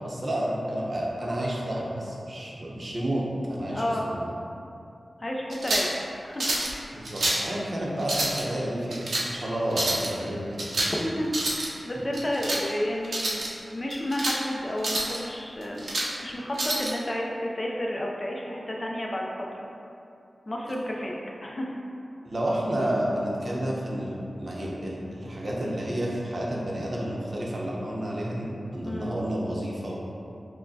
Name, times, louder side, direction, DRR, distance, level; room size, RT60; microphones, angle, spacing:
voice 1, 0.0-4.3 6.9-10.6 22.2-30.0, right 1 dB, 45° right, -4 dB, 0.7 m, -30 dB
voice 2, 3.7-4.0 5.2-6.0 6.2-6.5 10.8-11.3 11.5-19.6 20.5-21.8 28.8-29.1, left 1 dB, 30° left, -2 dB, 0.5 m, -31 dB
sound 1, 5.5-5.9 6.4-6.7 7.0-7.5 8.0-8.4 8.9-9.3 9.7-10.1 10.6-11.0 11.2-11.7 12.1-12.6 13.0-13.5 13.9-14.4 14.8-15.2 15.6-16.1 16.6-16.9, right 1 dB, 80° right, 0.6 m, -28 dB
6.3 x 2.1 x 2.7 m, 2.7 s
wide cardioid pair, 100°, 0 cm